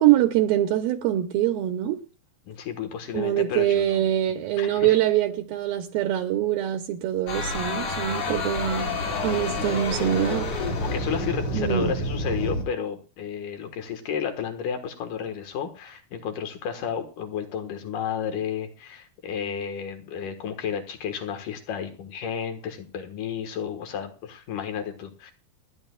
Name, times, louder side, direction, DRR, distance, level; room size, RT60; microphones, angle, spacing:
voice 1, 0.0-2.0 3.1-8.9 9.2-10.5 11.5-11.9, right 12 dB, 75° right, 2.6 m, -24 dB
voice 2, 2.5-4.0 4.6-4.9 9.1-9.3 10.8-25.3, left 7 dB, 65° left, 2.7 m, -32 dB
sound 1, 7.3-12.6, left 2 dB, 45° left, 3.1 m, -28 dB
29.0 x 10.5 x 2.4 m
omnidirectional pair, 4.5 m